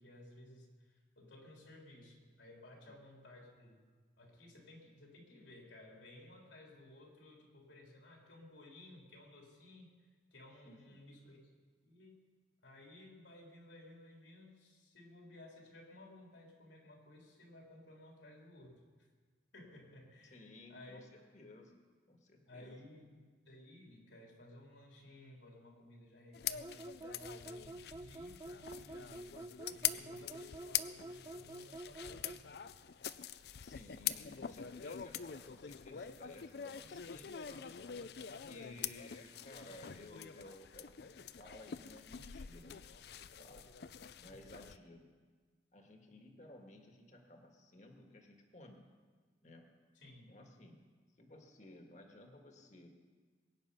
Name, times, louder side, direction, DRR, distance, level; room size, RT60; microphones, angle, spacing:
voice 1, 0.0-3.9 4.2-11.4 11.8-12.2 12.6-19.1 19.5-21.0 22.5-23.2 23.4-32.4 38.5-38.9 49.9-50.4, left 1 dB, 85° left, -1 dB, 3.5 m, -57 dB
voice 2, 10.6-11.0 20.3-21.1 21.3-21.8 22.1-22.8 33.6-37.9 38.2-42.8 43.2-43.7 44.2-45.1 45.7-48.9 49.4-49.7 50.3-50.8 51.2-52.9, left 1 dB, 40° left, 3 dB, 1.6 m, -56 dB
sound 1, 26.3-44.8, left 10 dB, 60° left, 0.4 m, -44 dB
sound 2, 26.6-32.5, right 2 dB, 20° right, 0.3 m, -48 dB
22.0 x 9.1 x 5.6 m, 1.5 s
head